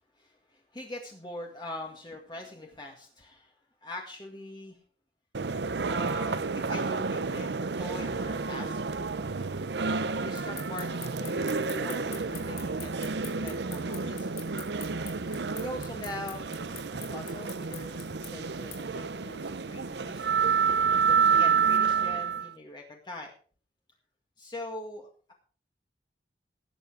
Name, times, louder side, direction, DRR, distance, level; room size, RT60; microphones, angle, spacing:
voice 1, 0.2-3.5 3.8-4.8 5.9-8.8 10.2-14.4 15.1-15.2 15.5-20.4 21.1-23.3 24.4-25.3, left 1 dB, 25° left, 1 dB, 1.9 m, -43 dB
sound 1, 5.3-22.5, right 5 dB, 80° right, 0.7 m, -29 dB
sound 2, 10.4-18.8, left 12 dB, 60° left, 3.4 m, -43 dB
17.5 x 8.5 x 4.9 m, 0.42 s
head